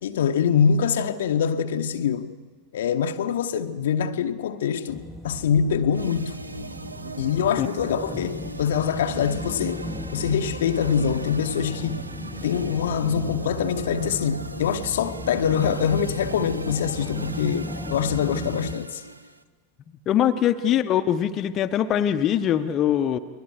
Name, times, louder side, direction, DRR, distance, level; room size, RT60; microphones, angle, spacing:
voice 1, 0.0-2.4 2.7-6.4 7.2-12.1 12.4-19.0, left 7 dB, 60° left, 1.0 m, -24 dB
sound 1, 4.9-18.8, left 2 dB, 10° left, 1.0 m, -36 dB
sound 2, 5.9-19.4, right 3 dB, 80° right, 0.8 m, -39 dB
voice 2, 20.1-23.2, left 10 dB, 30° left, 0.9 m, -22 dB
30.0 x 22.0 x 4.8 m
figure-of-eight pair, 90°, 0 cm